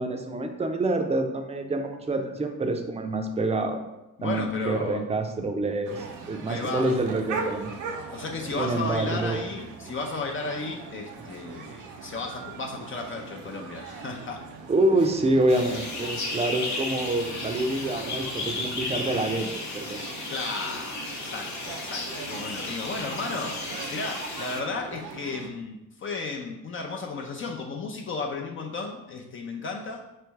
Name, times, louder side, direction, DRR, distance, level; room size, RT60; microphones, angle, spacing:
voice 1, 0.0-3.8 4.2-7.7 8.6-9.4 14.7-19.5 19.7-20.0, right 2 dB, 20° right, 5 dB, 0.5 m, -27 dB
voice 2, 4.2-5.0 6.5-6.9 8.1-14.4 20.3-30.0, left 3 dB, 40° left, 1 dB, 0.6 m, -34 dB
sound 1, 5.8-25.5, right 5 dB, 80° right, 0.6 m, -40 dB
sound 2, 15.5-24.6, left 3 dB, 70° left, 1.0 m, -34 dB
3.3 x 3.0 x 4.6 m, 0.95 s
cardioid pair, 90°, 30 cm